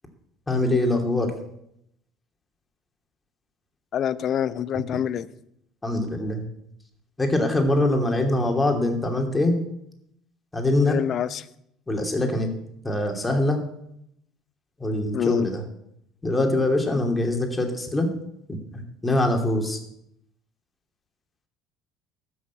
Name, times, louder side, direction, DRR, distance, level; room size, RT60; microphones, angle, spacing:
voice 1, 0.5-1.3 5.8-6.4 7.2-9.6 10.5-11.0 11.9-12.5 12.8-13.6 14.8-15.6 16.2-18.1 18.5-19.8, left 1 dB, 15° left, 3 dB, 2.7 m, -23 dB
voice 2, 3.9-5.3 10.8-11.5 15.1-15.5, left 9 dB, 50° left, 16 dB, 0.6 m, -26 dB
13.0 x 6.5 x 8.5 m, 0.77 s
supercardioid pair, 80°, 0 cm